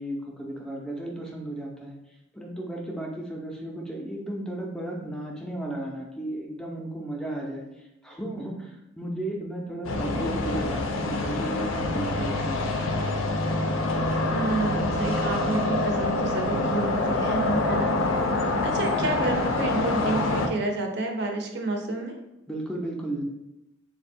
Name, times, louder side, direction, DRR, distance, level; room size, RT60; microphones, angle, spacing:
voice 1, 0.0-2.0 2.3-7.6 8.0-13.0 22.5-23.2, right 1 dB, 5° left, -2 dB, 0.4 m, -34 dB
sound 1, 9.8-20.5, left 2 dB, 80° left, 0.5 m, -26 dB
voice 2, 14.3-17.9 18.6-22.2, right 2 dB, 55° right, 3 dB, 0.5 m, -29 dB
3.3 x 2.1 x 4.2 m, 0.88 s
head